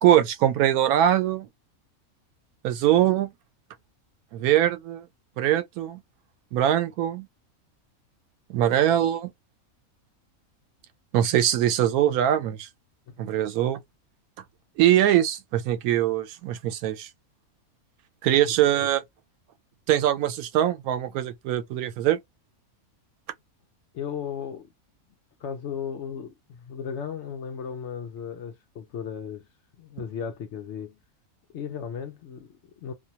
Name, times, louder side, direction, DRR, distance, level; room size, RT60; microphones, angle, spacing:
voice 1, 0.0-1.5 2.6-3.3 4.3-5.1 5.4-6.0 6.5-7.3 8.5-9.3 11.1-12.7 13.2-13.8 14.8-17.1 18.2-19.0 19.9-22.2, right 11 dB, 85° right, 1.1 m, -22 dB
voice 2, 23.9-24.7 25.4-29.5 29.8-31.0 31.5-32.9, left 7 dB, 65° left, 0.8 m, -35 dB
2.6 x 2.2 x 2.7 m
omnidirectional pair, 1.5 m